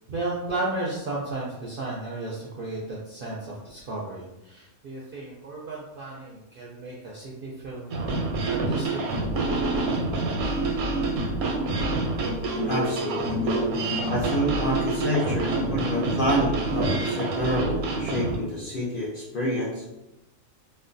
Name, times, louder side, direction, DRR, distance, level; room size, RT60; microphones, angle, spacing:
voice 1, 0.1-8.2 8.5-9.0, right 2 dB, 65° right, -4 dB, 0.5 m, -34 dB
sound 1, 7.9-18.4, right 2 dB, 85° right, 1.1 m, -27 dB
voice 2, 12.7-13.6 14.1-19.8, equal, 55° left, -6 dB, 0.6 m, -28 dB
4.1 x 2.1 x 2.6 m, 0.97 s
omnidirectional pair, 1.5 m